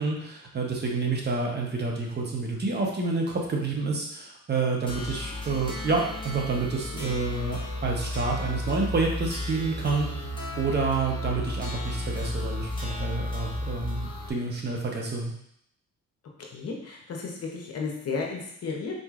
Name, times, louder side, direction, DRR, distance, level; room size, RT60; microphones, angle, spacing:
voice 1, 0.0-10.3 10.6-15.3, right 3 dB, 35° right, -1 dB, 0.8 m, -29 dB
sound 1, 4.9-14.3, left 1 dB, 15° left, 1.0 m, -33 dB
voice 2, 16.5-18.9, left 4 dB, 55° left, 0 dB, 0.8 m, -33 dB
3.9 x 3.0 x 2.4 m, 0.71 s
cardioid pair, 90°, 30 cm